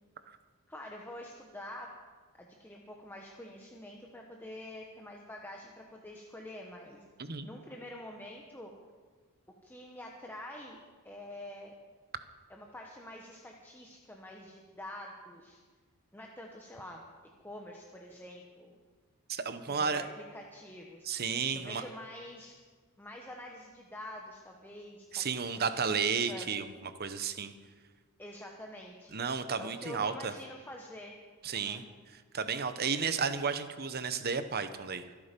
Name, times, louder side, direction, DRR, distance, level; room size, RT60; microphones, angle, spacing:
voice 1, 0.7-1.9 2.4-7.0 7.4-8.7 9.6-11.7 12.5-15.6 16.1-17.0 17.4-18.7 19.7-21.3 21.5-22.6 23.0-25.5 25.8-26.5 28.2-29.2 29.6-31.2 31.5-31.8, left 1 dB, 10° left, 0 dB, 1.1 m, -47 dB
voice 2, 19.3-20.0 21.0-21.8 25.1-27.5 29.1-30.3 31.4-35.1, right 5 dB, 45° right, 10 dB, 0.9 m, -33 dB
25.0 x 8.6 x 5.3 m, 1.5 s
head